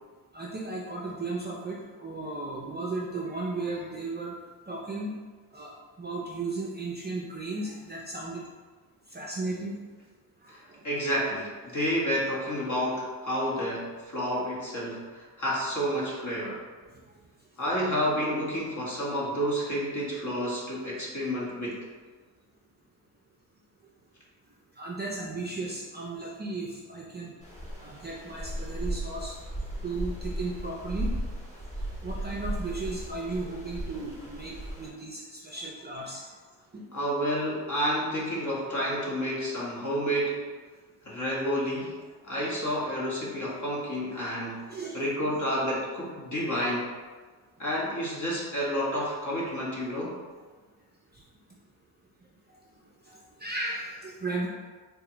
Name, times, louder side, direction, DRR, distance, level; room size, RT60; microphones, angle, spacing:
voice 1, 0.3-4.3 4.7-5.1 5.5-5.7 6.0-8.4 9.1-9.8 10.4-10.8 16.9-17.0 24.8-27.3 27.8-29.3 29.8-31.1 32.0-36.3 36.7-36.9 44.7-45.0 51.1-51.2 53.1-54.5, right 2 dB, 25° right, -3 dB, 0.5 m, -35 dB
voice 2, 10.8-16.6 17.6-21.8 36.9-40.4 41.0-42.0 42.2-47.0 47.6-50.1, equal, 40° left, -5 dB, 1.3 m, -30 dB
sound 1, 27.4-34.9, right 1 dB, 15° left, 1.0 m, -36 dB
4.0 x 2.2 x 2.9 m, 1.4 s
cardioid pair, 70°, 46 cm